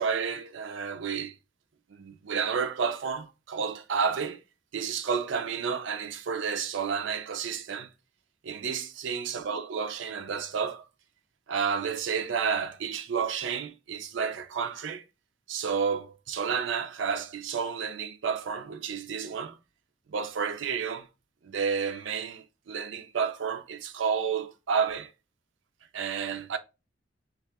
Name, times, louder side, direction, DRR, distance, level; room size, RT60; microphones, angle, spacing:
voice 1, 0.0-1.4 1.9-4.4 4.7-7.9 8.4-10.9 11.5-15.0 15.5-19.6 20.1-21.1 21.4-25.1 25.9-26.6, right 6 dB, 70° right, 0.4 m, -31 dB
2.7 x 2.4 x 3.4 m
head